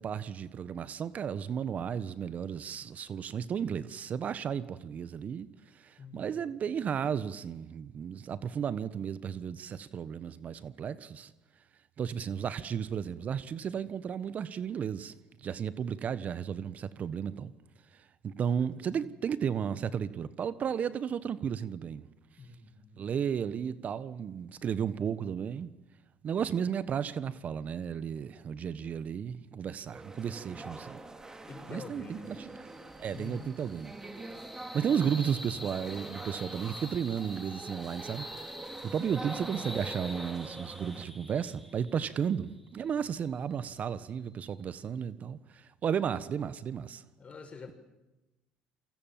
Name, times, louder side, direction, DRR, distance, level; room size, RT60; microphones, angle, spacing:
voice 1, 0.0-5.5 5.7-11.3 12.0-15.1 15.4-17.5 18.2-22.1 23.0-25.7 26.2-31.0 31.7-32.5 33.0-33.9 34.7-38.5 38.8-47.0, right 8 dB, 45° right, 1.3 m, -34 dB
voice 2, 6.0-6.5 18.3-19.1 22.4-23.0 31.5-32.3 33.1-33.8 39.3-39.8 47.2-47.7, left 4 dB, 35° left, 6.5 m, -48 dB
sound 1, 29.9-41.0, right 2 dB, 20° right, 3.3 m, -45 dB
sound 2, 32.3-44.9, left 1 dB, ahead, 4.4 m, -47 dB
28.5 x 24.0 x 7.6 m
hypercardioid pair, 70°, 3 cm